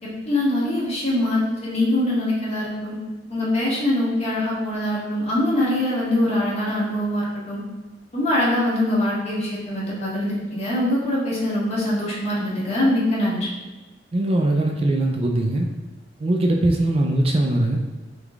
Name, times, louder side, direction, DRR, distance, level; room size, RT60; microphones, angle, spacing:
voice 1, 0.0-3.0 3.3-7.6 8.1-13.5, left 1 dB, 40° left, -7 dB, 1.5 m, -23 dB
voice 2, 14.1-15.7 16.2-17.8, right 1 dB, 35° right, 2 dB, 0.4 m, -21 dB
3.7 x 3.5 x 3.5 m, 1.2 s
head